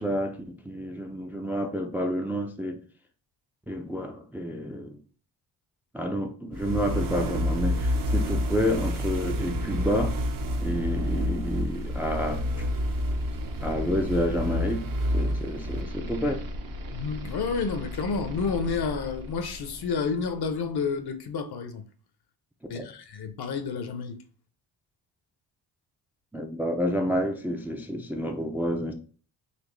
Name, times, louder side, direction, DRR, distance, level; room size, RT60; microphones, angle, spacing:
voice 1, 0.0-2.8 3.7-5.0 5.9-10.1 10.6-12.7 13.6-14.8 15.1-16.4 22.7-22.9 26.3-28.9, equal, 5° right, 0.4 m, -29 dB
sound 1, 6.5-20.4, left 1 dB, 45° right, 0.8 m, -30 dB
voice 2, 16.9-21.8 22.7-24.2, left 5 dB, 55° left, 0.8 m, -30 dB
4.2 x 2.7 x 3.2 m
cardioid pair, 80°, 47 cm